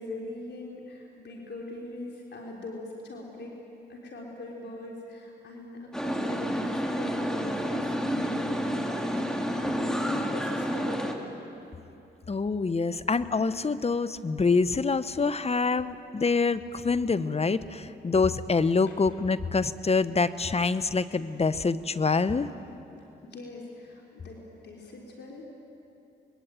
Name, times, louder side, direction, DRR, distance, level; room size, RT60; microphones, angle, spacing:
voice 1, 0.0-3.6 3.9-11.4 18.9-19.0 23.2-24.4 24.6-25.5, left 2 dB, 70° left, -1 dB, 3.9 m, -41 dB
sound 1, 5.9-11.1, equal, 5° left, 3.0 m, -29 dB
voice 2, 12.3-22.5, left 4 dB, 35° left, 14 dB, 1.1 m, -26 dB
25.5 x 21.0 x 9.2 m, 2.9 s
cardioid pair, 60°, 19 cm